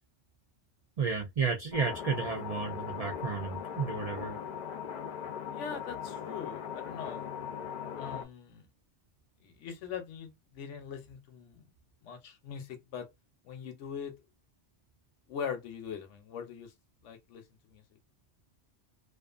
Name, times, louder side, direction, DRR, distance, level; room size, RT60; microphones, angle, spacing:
voice 1, 1.0-4.4, right 5 dB, 65° right, 0.4 m, -32 dB
sound 1, 1.7-8.2, left 8 dB, 55° left, 0.5 m, -39 dB
voice 2, 5.5-7.3 8.0-8.7 9.4-11.6 12.0-13.1 13.4-14.1 15.3-16.7 17.0-17.4 17.7-17.8, left 7 dB, 85° left, 1.0 m, -41 dB
2.4 x 2.4 x 2.4 m
omnidirectional pair, 1.2 m